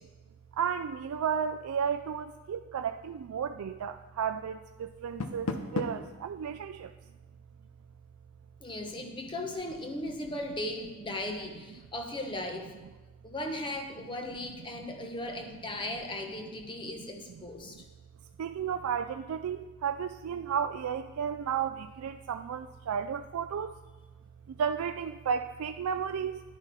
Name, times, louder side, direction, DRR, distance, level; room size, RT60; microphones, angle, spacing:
voice 1, 0.5-6.9 17.6-17.7 18.4-23.7 24.5-26.4, right 7 dB, 85° right, 8 dB, 0.3 m, -33 dB
Door, 4.9-6.1, left 2 dB, 75° left, 0.8 m, -35 dB
voice 2, 8.6-12.7 13.2-17.8, left 1 dB, 20° left, 3 dB, 1.0 m, -37 dB
10.5 x 9.6 x 4.2 m, 1.2 s
head